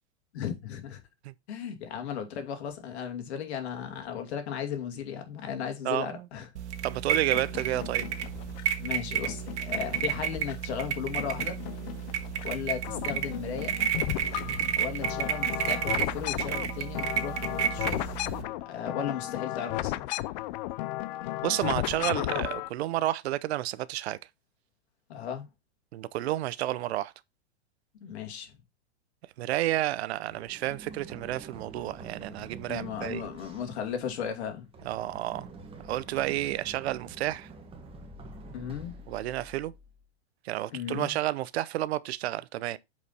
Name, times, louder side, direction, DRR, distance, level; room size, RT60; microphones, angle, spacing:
voice 1, 0.3-1.0 1.5-6.5 8.8-11.6 12.4-13.8 14.7-20.1 25.1-25.5 28.0-28.5 32.7-34.7 38.5-38.9 40.7-41.1, left 8 dB, 70° left, 2.6 m, -36 dB
voice 2, 5.8-6.3 6.8-8.1 14.4-14.6 21.4-24.2 25.9-27.1 29.4-33.2 34.8-35.5 35.9-37.5 39.1-39.7 40.4-42.8, right 15 dB, 65° right, 0.7 m, -31 dB
sound 1, 6.6-18.4, right 9 dB, 85° right, 1.7 m, -32 dB
sound 2, 7.3-8.8 9.3-10.8 11.2-12.5 12.8-22.7, left 17 dB, 40° left, 0.4 m, -35 dB
Run, 30.3-40.0, right 2 dB, 15° right, 1.4 m, -47 dB
8.2 x 5.1 x 4.2 m
hypercardioid pair, 140°, 34 cm